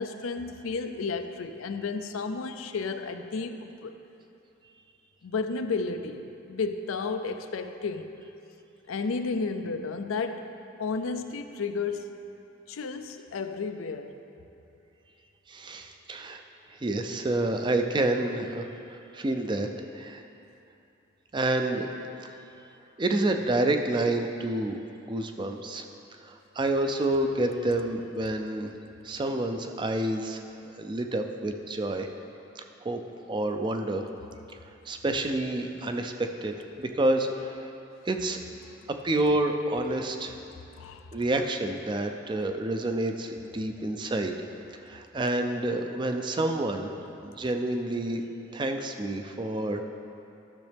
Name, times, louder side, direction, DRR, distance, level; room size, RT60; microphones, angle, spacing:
voice 1, 0.0-4.0 5.2-8.1 8.9-10.5 10.8-12.1 12.7-14.2 40.7-41.1, left 4 dB, 90° left, 8 dB, 0.5 m, -32 dB
voice 2, 15.5-16.4 16.7-20.2 21.3-21.9 23.0-24.8 25.0-25.9 26.2-28.7 29.0-30.4 30.8-32.1 32.6-33.0 33.3-34.1 34.5-37.7 38.1-38.4 38.9-40.4 41.1-44.4 44.8-46.9 47.2-48.2 48.5-49.8, right 2 dB, 25° right, 5 dB, 0.4 m, -29 dB
12.0 x 6.4 x 3.4 m, 2.7 s
head